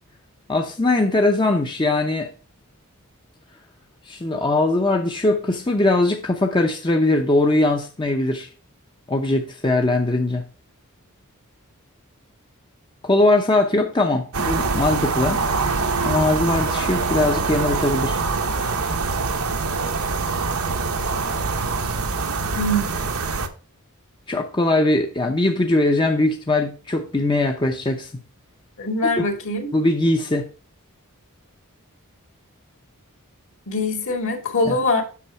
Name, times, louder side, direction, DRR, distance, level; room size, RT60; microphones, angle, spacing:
voice 1, 0.5-2.3 4.1-8.5 9.1-10.4 13.0-15.4 16.0-18.2 24.3-28.1 29.0-29.2 29.7-30.5 34.7-34.8, left 2 dB, 20° left, 0.7 m, -20 dB
sound 1, 14.3-23.5, right 4 dB, 75° right, 1.1 m, -24 dB
voice 2, 22.6-22.9 28.8-29.7 33.7-35.0, left 1 dB, 60° left, 2.3 m, -23 dB
8.4 x 6.1 x 4.5 m
head